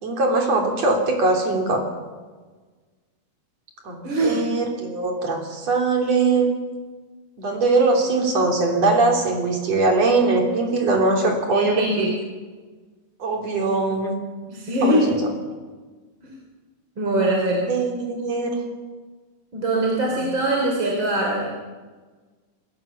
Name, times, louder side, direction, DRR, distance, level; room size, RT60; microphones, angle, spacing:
voice 1, 0.0-1.8 3.8-6.5 7.4-12.1 13.2-14.1 14.8-15.3 17.3-17.4 17.7-18.6 20.1-20.3, right 3 dB, 55° right, 2 dB, 4.3 m, -21 dB
voice 2, 4.0-4.6 11.5-12.2 14.5-15.1 16.2-16.4 17.0-17.6 19.5-21.6, right 1 dB, 40° right, -1 dB, 3.8 m, -22 dB
27.0 x 16.0 x 7.1 m, 1.4 s
omnidirectional pair, 3.6 m